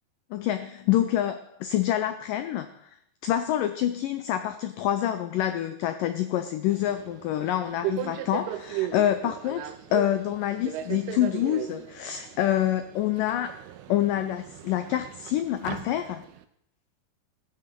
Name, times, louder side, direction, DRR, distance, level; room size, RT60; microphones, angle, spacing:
voice 1, 0.3-2.9 3.2-13.5 13.9-16.3, left 12 dB, 90° left, 10 dB, 1.9 m, -27 dB
Subway metro underground, 6.7-16.4, right 12 dB, 80° right, 2.7 m, -37 dB
14.5 x 9.7 x 6.8 m, 0.73 s
omnidirectional pair, 4.8 m